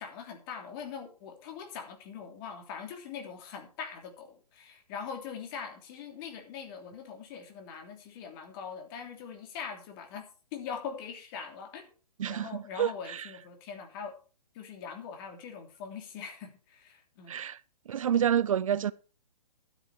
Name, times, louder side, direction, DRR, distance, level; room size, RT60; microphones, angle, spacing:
voice 1, 0.0-10.2 10.5-11.8 12.3-14.2 14.5-17.4, left 6 dB, 35° left, 3.1 m, -42 dB
voice 2, 12.2-13.2 17.3-17.6 17.9-18.9, right 9 dB, 55° right, 0.5 m, -28 dB
12.0 x 8.5 x 4.8 m
figure-of-eight pair, 130°, 20 cm